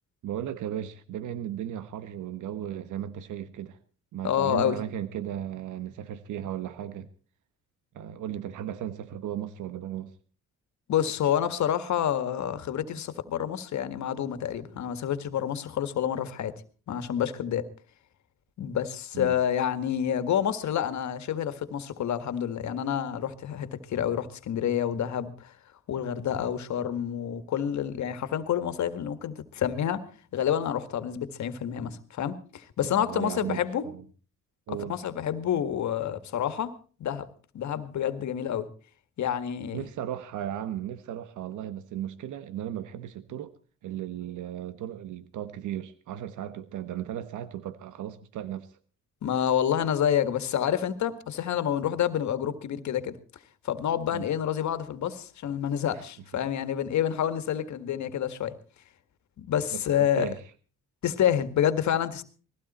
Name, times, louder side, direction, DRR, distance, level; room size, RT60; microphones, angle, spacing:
voice 1, 0.2-3.8 4.1-7.1 7.9-10.1 19.1-19.3 32.8-34.0 34.7-35.0 39.7-43.5 43.8-48.7 54.1-54.3 55.9-56.0 59.7-60.4, right 11 dB, 80° right, 1.3 m, -36 dB
voice 2, 4.2-4.8 10.9-16.5 16.9-17.6 18.6-25.5 25.9-30.0 30.3-33.8 34.8-36.7 37.0-37.3 37.5-38.7 39.2-39.9 49.2-53.2 53.6-58.5 59.4-60.3 61.0-62.2, left 9 dB, 70° left, 1.9 m, -28 dB
20.5 x 15.5 x 4.3 m
cardioid pair, 90°, 30 cm